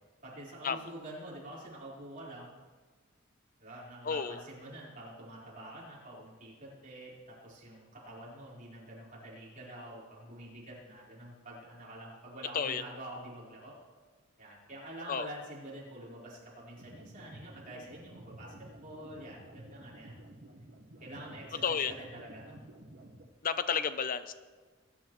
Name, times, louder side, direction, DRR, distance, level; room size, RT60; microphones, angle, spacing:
voice 1, 0.2-2.5 3.6-13.8 14.4-20.1 21.0-22.6, right 1 dB, 40° right, -6 dB, 4.3 m, -47 dB
voice 2, 4.1-4.4 12.5-12.8 15.1-15.3 21.6-21.9 23.4-24.3, left 6 dB, 45° left, 12 dB, 0.5 m, -31 dB
sound 1, 16.8-23.2, right 1 dB, 70° right, 1.4 m, -52 dB
20.0 x 10.0 x 3.1 m, 1.4 s
head